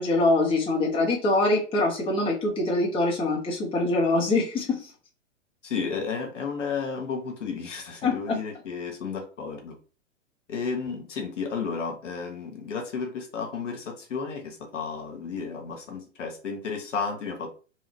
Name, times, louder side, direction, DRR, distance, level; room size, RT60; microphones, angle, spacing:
voice 1, 0.0-4.8 8.0-8.4, left 2 dB, 15° left, -2 dB, 0.9 m, -24 dB
voice 2, 5.6-9.8 10.5-17.5, left 5 dB, 70° left, 3 dB, 1.0 m, -32 dB
2.9 x 2.4 x 3.1 m, 0.36 s
figure-of-eight pair, 105°, 37 cm